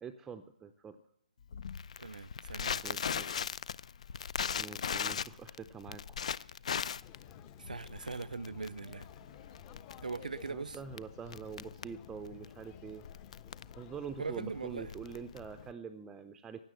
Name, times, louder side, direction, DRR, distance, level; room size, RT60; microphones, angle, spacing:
voice 1, 0.0-1.0 2.8-3.3 4.6-6.2 10.5-13.0 13.8-16.6, right 6 dB, 10° right, 0.6 m, -45 dB
Crackle, 1.5-15.7, left 7 dB, 55° left, 0.6 m, -39 dB
voice 2, 2.0-3.2 7.6-9.1 10.0-10.8 14.2-14.9, right 4 dB, 80° right, 0.7 m, -41 dB
sound 1, 7.0-15.7, left 9 dB, 25° left, 0.9 m, -55 dB
16.5 x 10.5 x 7.7 m
figure-of-eight pair, 145°, 4 cm